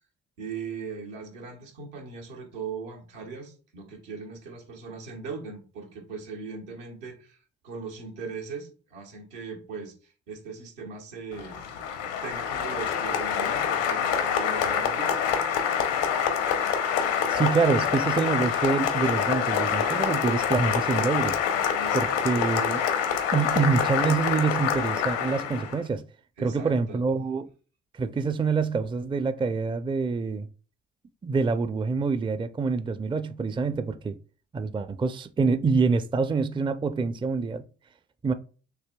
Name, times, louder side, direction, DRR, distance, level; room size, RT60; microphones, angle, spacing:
voice 1, 0.4-7.4 7.6-11.7 12.2-15.2 21.8-22.5 26.4-27.0, right 5 dB, 80° right, 1.2 m, -39 dB
Applause, 11.3-25.8, left 7 dB, 75° left, 0.8 m, -26 dB
voice 2, 17.3-21.4 21.9-22.8 23.3-26.0 26.4-27.5 28.0-30.5 31.2-34.2 34.5-37.6 38.2-38.3, right 4 dB, 15° right, 0.4 m, -26 dB
6.6 x 2.7 x 2.2 m
hypercardioid pair, 45°, 33 cm